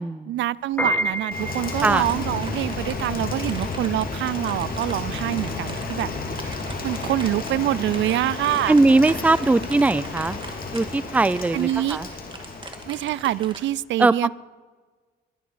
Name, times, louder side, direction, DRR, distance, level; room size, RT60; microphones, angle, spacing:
voice 1, 0.3-6.1 6.4-8.8 11.5-12.0 12.9-14.3, right 14 dB, 70° right, 22 dB, 0.4 m, -25 dB
Piano, 0.6-11.0, right 1 dB, 10° left, 4.3 m, -32 dB
sound 1, 0.9-13.6, right 3 dB, 25° right, 1.9 m, -42 dB
Rain, 1.3-13.7, left 3 dB, 45° left, 2.8 m, -32 dB
voice 2, 8.7-10.4 10.7-12.1 14.0-14.1, right 3 dB, 5° right, 19 dB, 0.4 m, -19 dB
21.5 x 10.0 x 5.0 m, 1.4 s
cardioid pair, 90°, 20 cm